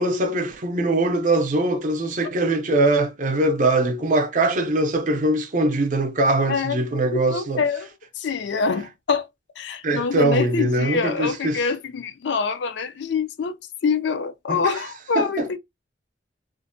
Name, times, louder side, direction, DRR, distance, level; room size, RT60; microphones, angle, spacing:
voice 1, 0.0-7.6 9.8-11.7 14.5-14.8 15.1-15.5, right 2 dB, 45° right, 0.5 m, -22 dB
voice 2, 6.5-6.8 7.1-7.9 8.2-9.3 9.6-13.6 13.8-15.6, left 5 dB, 70° left, 0.4 m, -25 dB
2.5 x 2.1 x 2.5 m
head